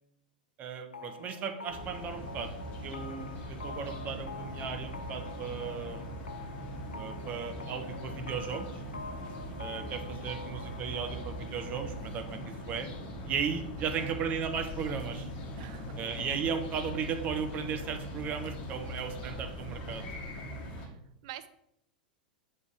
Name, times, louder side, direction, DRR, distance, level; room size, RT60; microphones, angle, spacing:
voice 1, 0.6-2.5 2.8-6.1 7.0-8.7 9.6-12.4 12.7-12.9 13.2-15.3 16.0-20.0, right 6 dB, 35° right, 6 dB, 0.9 m, -36 dB
sound 1, 0.9-14.4, left 3 dB, 80° left, 0.5 m, -47 dB
sound 2, 1.7-20.9, equal, 35° left, 1.4 m, -41 dB
voice 2, 9.2-9.8 13.8-14.1 15.6-15.9 18.7-19.2 20.6-21.5, right 12 dB, 50° right, 12 dB, 0.5 m, -50 dB
7.2 x 3.3 x 5.9 m, 0.76 s
figure-of-eight pair, 90°, 5 cm